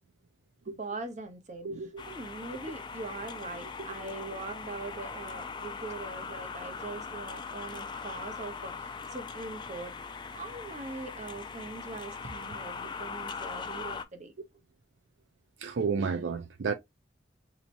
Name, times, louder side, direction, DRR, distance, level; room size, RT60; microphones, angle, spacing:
voice 1, 0.8-1.7 2.1-9.9 10.3-14.3, right 3 dB, 40° right, 0.9 m, -41 dB
voice 2, 1.6-2.0 3.8-3.9 15.6-16.7, right 5 dB, 70° right, 0.4 m, -31 dB
sound 1, 2.0-14.0, left 5 dB, 25° left, 0.4 m, -41 dB
4.1 x 3.0 x 2.6 m
head